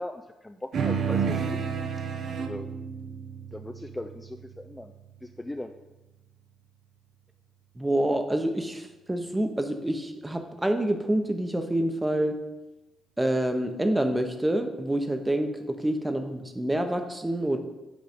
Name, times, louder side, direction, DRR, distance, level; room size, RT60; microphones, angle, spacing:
voice 1, 0.0-1.6 2.4-2.7 3.5-4.9 5.2-5.7, left 1 dB, 10° left, 5 dB, 0.4 m, -38 dB
sound 1, 0.7-5.5, right 6 dB, 65° right, 0.8 m, -31 dB
voice 2, 7.8-12.3 13.2-17.6, right 1 dB, 10° right, 6 dB, 0.9 m, -27 dB
8.1 x 3.8 x 5.1 m, 1.0 s
cardioid pair, 90°, 0 cm